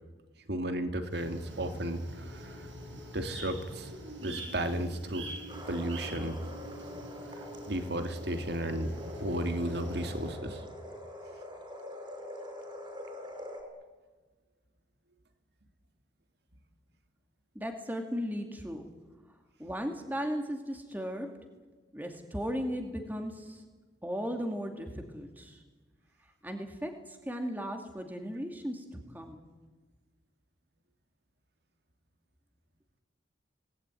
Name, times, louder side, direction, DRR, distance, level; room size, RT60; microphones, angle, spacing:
voice 1, 0.5-2.7 3.1-3.9 4.2-5.3 5.7-6.4 7.7-8.9 9.2-10.6, right 1 dB, 60° right, 7 dB, 2.4 m, -34 dB
sound 1, 1.1-10.3, right 1 dB, 90° right, 7.8 m, -45 dB
sound 2, 5.5-13.6, left 1 dB, 25° right, 5.7 m, -44 dB
voice 2, 17.5-18.9 19.6-21.3 21.9-23.6 24.0-25.6 26.4-29.4, equal, 10° right, 4 dB, 2.2 m, -36 dB
26.5 x 19.0 x 9.5 m, 1.4 s
head